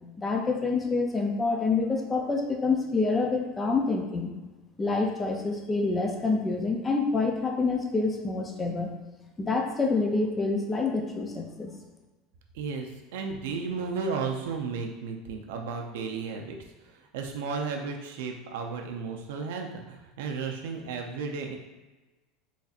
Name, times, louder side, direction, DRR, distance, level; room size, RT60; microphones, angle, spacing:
voice 1, 0.2-4.3 4.8-8.9 9.4-11.8, left 3 dB, 15° left, 2 dB, 0.4 m, -27 dB
voice 2, 12.5-21.6, right 5 dB, 85° right, 2 dB, 0.5 m, -34 dB
4.0 x 3.3 x 2.4 m, 1.2 s
supercardioid pair, 165°, 0 cm